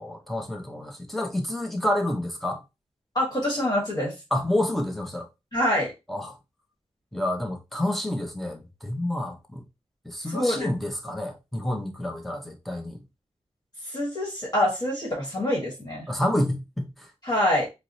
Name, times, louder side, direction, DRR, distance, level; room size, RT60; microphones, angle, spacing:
voice 1, 0.0-2.6 4.3-5.3 6.1-6.4 7.1-9.6 10.0-13.0 16.1-17.1, left 1 dB, ahead, 0.7 m, -29 dB
voice 2, 3.1-4.1 5.5-5.9 10.3-10.7 13.8-16.1 17.2-17.7, left 1 dB, 35° left, 1.3 m, -25 dB
4.5 x 2.0 x 2.6 m
wide cardioid pair, 125°, 12 cm